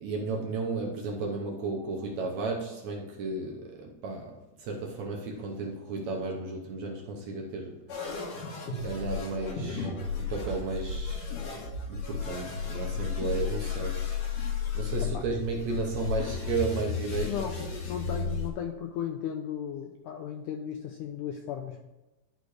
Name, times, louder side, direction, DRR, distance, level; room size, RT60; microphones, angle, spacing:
voice 1, 0.0-4.3 4.6-7.8 8.8-11.3 11.9-14.1 14.7-17.5, right 3 dB, 70° right, 0 dB, 1.7 m, -33 dB
sound 1, 7.9-18.5, left 5 dB, 65° left, 3.0 m, -33 dB
voice 2, 17.2-17.6 17.9-21.8, left 9 dB, 85° left, 4 dB, 1.8 m, -35 dB
11.5 x 4.2 x 4.8 m, 1.0 s
omnidirectional pair, 4.1 m